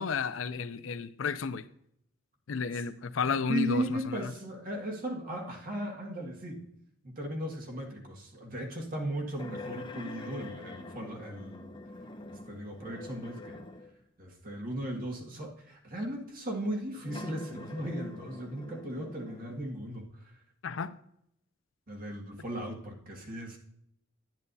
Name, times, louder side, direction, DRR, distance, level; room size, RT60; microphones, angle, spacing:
voice 1, 0.0-1.6 2.5-4.2 20.6-20.9, left 5 dB, 80° left, 0.5 m, -32 dB
voice 2, 3.5-6.7 7.0-11.8 12.3-13.7 14.2-20.3 21.9-23.6, right 1 dB, 45° right, 1.8 m, -37 dB
sound 1, 9.4-14.0 14.8-14.9 17.0-19.6, left 2 dB, 25° left, 0.6 m, -45 dB
10.5 x 9.7 x 2.7 m
head